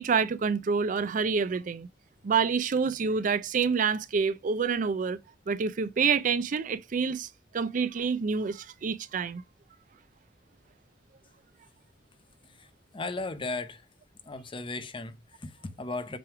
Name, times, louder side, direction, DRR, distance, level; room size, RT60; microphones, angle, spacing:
voice 1, 0.0-1.9 2.2-5.2 5.5-7.3 7.5-9.4, right 5 dB, 45° right, 0.4 m, -27 dB
voice 2, 12.9-13.8 14.3-16.2, left 3 dB, 30° left, 0.7 m, -36 dB
7.5 x 3.4 x 4.6 m
head